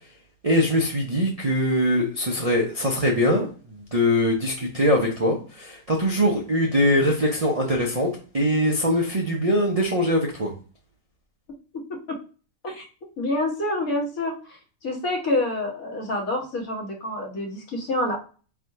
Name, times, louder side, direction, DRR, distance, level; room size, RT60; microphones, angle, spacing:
voice 1, 0.4-3.5 3.9-10.5, equal, 40° right, -2 dB, 0.5 m, -22 dB
voice 2, 13.2-18.2, left 1 dB, 70° left, -1 dB, 1.6 m, -27 dB
3.6 x 2.5 x 4.5 m, 0.37 s
omnidirectional pair, 1.5 m